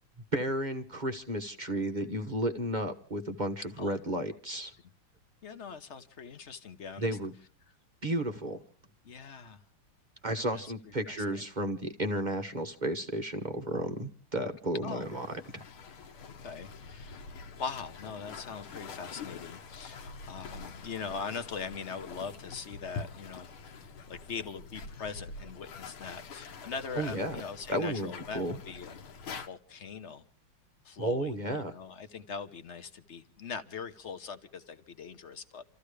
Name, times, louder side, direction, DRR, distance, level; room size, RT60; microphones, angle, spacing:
voice 1, 0.3-4.7 7.0-7.3 8.0-8.6 10.2-15.3 15.5-15.6 27.0-27.4 27.7-28.6 31.0-31.7, right 1 dB, 30° right, 1.0 m, -33 dB
voice 2, 5.4-7.2 9.0-9.6 10.3-10.6 11.1-11.5 14.8-15.1 16.2-23.5 23.8-29.0 29.3-30.2 30.8-35.6, left 5 dB, 40° left, 1.1 m, -42 dB
sound 1, 15.0-29.5, left 4 dB, 75° left, 2.0 m, -46 dB
29.0 x 14.5 x 3.3 m
omnidirectional pair, 2.3 m